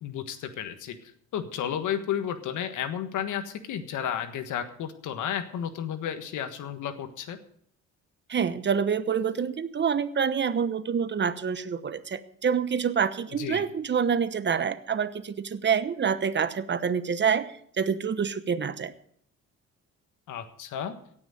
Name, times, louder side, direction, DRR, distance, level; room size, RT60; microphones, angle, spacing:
voice 1, 0.0-7.4 13.3-13.6 20.3-20.9, left 9 dB, 80° left, 9 dB, 1.5 m, -32 dB
voice 2, 8.3-17.5 17.8-18.9, right 6 dB, 35° right, 13 dB, 1.0 m, -27 dB
17.0 x 6.3 x 7.7 m, 0.65 s
cardioid pair, 90°, 30 cm